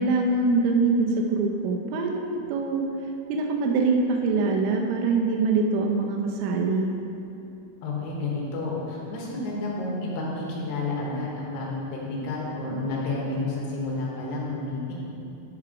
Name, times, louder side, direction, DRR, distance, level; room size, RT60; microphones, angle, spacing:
voice 1, 0.0-2.9 3.3-6.9, right 3 dB, 85° right, 2 dB, 3.2 m, -24 dB
voice 2, 7.8-14.9, left 2 dB, 70° left, -3 dB, 2.9 m, -30 dB
10.5 x 4.7 x 4.9 m, 2.8 s
omnidirectional pair, 5.6 m